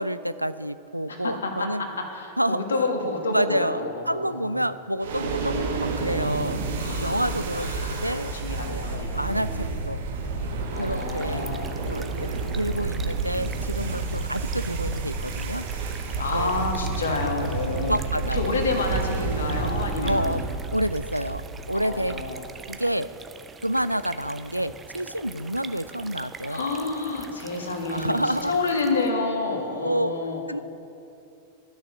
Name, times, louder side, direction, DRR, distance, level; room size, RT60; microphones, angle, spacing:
voice 1, 0.0-1.8 2.4-2.6 3.3-3.8 4.1-6.6 7.0-8.3 8.7-10.0 10.8-11.5 11.9-12.3 12.6-15.6 16.3-16.7 17.8-18.5 20.0-20.4 20.7-21.4 21.7-22.2 22.7-23.1 23.6-26.6 27.9-28.5 29.8-30.1 30.5-30.6, equal, 90° right, 14 dB, 0.3 m, -28 dB
voice 2, 1.1-4.6 6.8-9.6 10.7-11.7 16.2-17.9 18.3-20.4 21.8-22.4 26.4-30.4, left 3 dB, 70° left, 3 dB, 1.5 m, -29 dB
sound 1, 5.0-22.4, right 3 dB, 60° right, 1.2 m, -30 dB
sound 2, 10.7-29.2, right 5 dB, 20° right, 0.6 m, -44 dB
11.0 x 6.5 x 8.4 m, 2.7 s
figure-of-eight pair, 90°, 0 cm